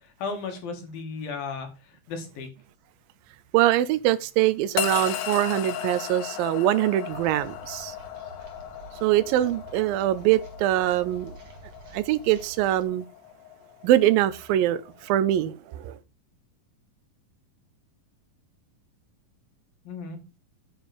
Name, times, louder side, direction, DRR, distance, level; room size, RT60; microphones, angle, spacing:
voice 1, 0.2-1.7 2.1-2.5 19.9-20.2, left 4 dB, 85° left, 3.9 m, -34 dB
voice 2, 3.5-8.0 9.0-11.3 11.9-13.1 13.8-16.0, right 13 dB, 85° right, 2.5 m, -23 dB
sound 1, 4.8-15.1, left 11 dB, 70° left, 2.2 m, -36 dB
sound 2, 7.1-12.9, right 3 dB, 50° right, 2.6 m, -48 dB
9.0 x 5.3 x 6.1 m
omnidirectional pair, 4.0 m